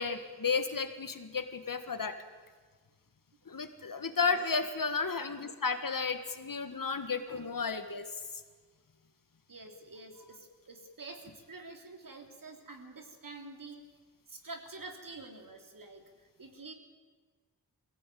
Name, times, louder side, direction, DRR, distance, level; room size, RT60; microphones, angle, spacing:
voice 1, 0.0-2.2 3.5-8.0, left 5 dB, 55° left, 9 dB, 1.7 m, -33 dB
voice 2, 9.5-13.8 14.3-16.7, right 3 dB, 55° right, 4 dB, 3.1 m, -48 dB
22.0 x 16.5 x 9.2 m, 1.4 s
wide cardioid pair, 105°, 40 cm